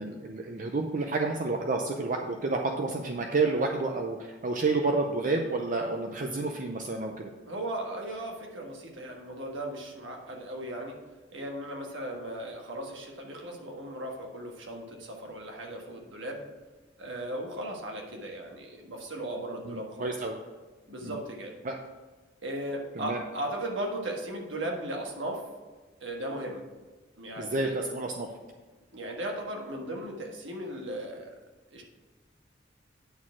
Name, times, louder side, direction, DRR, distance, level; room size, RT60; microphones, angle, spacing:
voice 1, 0.0-7.3 19.6-20.3 21.0-21.2 21.6-21.7 22.9-23.2 27.4-28.3, right 3 dB, 45° right, 2 dB, 0.6 m, -30 dB
voice 2, 7.4-10.9 11.3-16.4 17.0-20.2 20.9-21.5 22.4-25.4 26.0-26.6 27.2-27.7 28.9-31.3 31.7-31.8, right 1 dB, 85° right, 0 dB, 1.5 m, -37 dB
9.4 x 4.3 x 5.9 m, 1.3 s
head